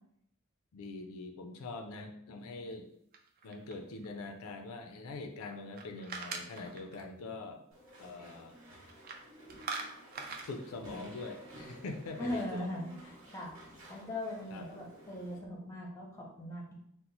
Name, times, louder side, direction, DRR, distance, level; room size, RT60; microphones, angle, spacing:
voice 1, 0.7-2.9 3.4-7.6 8.0-8.6 10.4-12.7 14.5-14.7, left 3 dB, 75° left, 5 dB, 0.4 m, -43 dB
sound 1, 3.1-4.0 5.5-7.0 8.9-9.2 9.5-10.5, right 4 dB, 40° right, 0.4 m, -42 dB
Walk footsteps / Chatter / Squeak, 7.7-15.4, equal, 60° right, 1.0 m, -53 dB
voice 2, 12.2-13.5 13.9-16.7, left 1 dB, 15° left, -2 dB, 0.6 m, -40 dB
2.9 x 2.0 x 3.9 m, 0.73 s
head